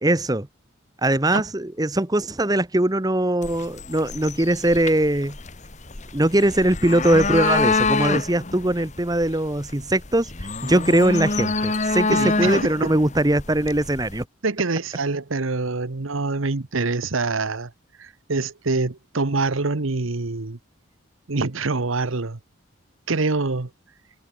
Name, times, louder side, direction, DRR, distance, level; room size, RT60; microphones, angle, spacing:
voice 1, 0.0-0.5 1.0-5.4 6.1-10.3 10.6-14.2, right 1 dB, 20° right, 1.0 m, -21 dB
sound 1, 3.4-14.2, left 3 dB, 35° left, 1.5 m, -27 dB
voice 2, 12.1-12.9 14.4-17.7 18.0-20.6 21.3-22.4 23.1-23.7, right 3 dB, 75° right, 1.1 m, -25 dB
head